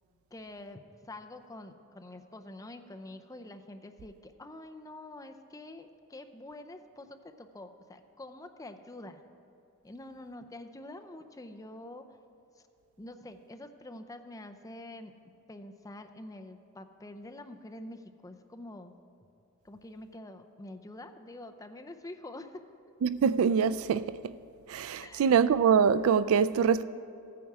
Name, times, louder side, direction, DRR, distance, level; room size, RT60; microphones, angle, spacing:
voice 1, 0.3-9.2 9.8-12.1 12.6-12.7 13.0-15.1 15.5-19.0 19.6-22.6 25.0-25.4, left 1 dB, 15° left, 0.5 m, -46 dB
voice 2, 23.0-24.3 24.7-26.8, right 7 dB, 70° right, 0.3 m, -24 dB
14.5 x 9.4 x 4.8 m
head